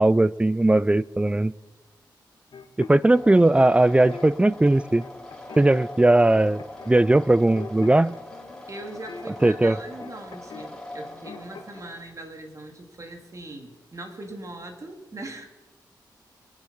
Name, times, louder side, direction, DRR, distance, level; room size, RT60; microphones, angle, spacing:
voice 1, 0.0-1.5 2.9-5.0 5.6-8.1 9.4-9.8, right 2 dB, 15° right, 21 dB, 0.4 m, -19 dB
sound 1, 2.5-4.2 4.7-5.9 6.6-7.0 7.2-10.7 11.0-11.8, left 5 dB, 75° left, 1.5 m, -44 dB
sound 2, 3.1-12.0, left 2 dB, 10° left, 3.2 m, -42 dB
voice 2, 8.7-15.5, right 2 dB, 40° right, 4 dB, 2.7 m, -40 dB
22.0 x 8.3 x 5.6 m, 1.1 s
cardioid pair, 60°, 8 cm